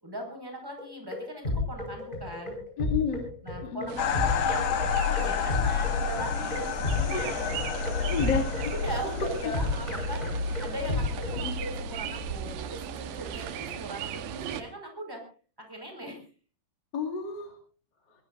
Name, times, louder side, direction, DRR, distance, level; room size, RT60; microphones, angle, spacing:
voice 1, 0.0-2.6 3.4-4.6 5.0-7.6 8.7-15.2 15.6-16.2, equal, 5° right, 3 dB, 5.0 m, -39 dB
sound 1, 0.8-11.4, left 2 dB, 10° left, 5.2 m, -32 dB
voice 2, 2.8-3.2 3.6-4.0 7.1-7.2 8.0-8.7 9.4-9.5 11.4-11.5 16.9-17.5, left 6 dB, 30° left, 0 dB, 2.6 m, -30 dB
sound 2, 3.9-14.6, right 10 dB, 85° right, 3.0 m, -38 dB
sound 3, 4.0-12.9, left 6 dB, 65° left, 2.2 m, -31 dB
22.5 x 21.0 x 2.6 m, 0.39 s
omnidirectional pair, 4.4 m